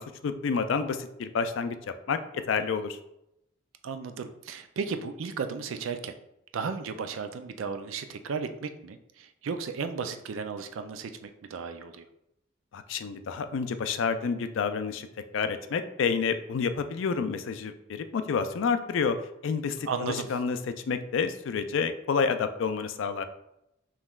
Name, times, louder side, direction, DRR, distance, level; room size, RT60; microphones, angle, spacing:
voice 1, 0.0-3.0 12.7-15.1 15.3-19.2 19.4-20.6 20.9-23.2, left 5 dB, 70° left, 10 dB, 0.4 m, -29 dB
voice 2, 3.8-6.1 6.5-12.0 19.9-20.3, right 5 dB, 85° right, 8 dB, 0.4 m, -34 dB
5.4 x 3.0 x 2.3 m, 0.83 s
head